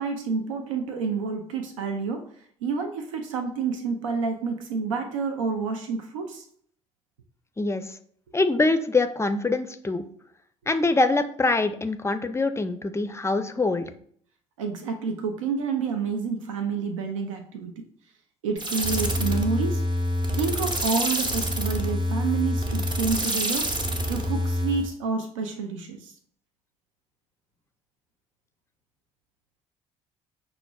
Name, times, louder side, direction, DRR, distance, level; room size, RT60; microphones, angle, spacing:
voice 1, 0.0-2.3 2.6-6.4 14.6-17.8 18.4-19.8 20.4-23.7 24.1-26.1, right 5 dB, 90° right, 5 dB, 0.4 m, -29 dB
voice 2, 8.3-10.0 10.7-13.9, left 3 dB, 15° left, 9 dB, 0.4 m, -24 dB
sound 1, 18.6-24.9, equal, 30° right, 0.8 m, -26 dB
5.7 x 2.1 x 2.2 m, 0.62 s
hypercardioid pair, 55°, 16 cm